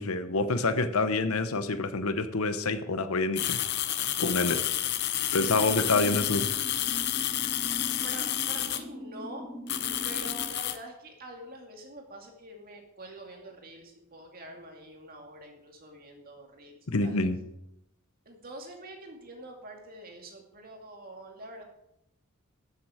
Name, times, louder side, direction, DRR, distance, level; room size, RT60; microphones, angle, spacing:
voice 1, 0.0-3.6 4.2-4.6 5.3-6.5 16.9-17.4, left 3 dB, 75° left, 11 dB, 1.0 m, -27 dB
sound 1, 3.4-8.8 9.7-10.8, left 12 dB, 50° left, 0.7 m, -30 dB
sound 2, 5.4-10.4, left 1 dB, 5° right, 1.8 m, -41 dB
voice 2, 8.0-9.4 10.0-17.2 18.3-21.6, right 1 dB, 45° right, 2 dB, 2.3 m, -46 dB
13.0 x 7.5 x 4.9 m, 0.82 s
head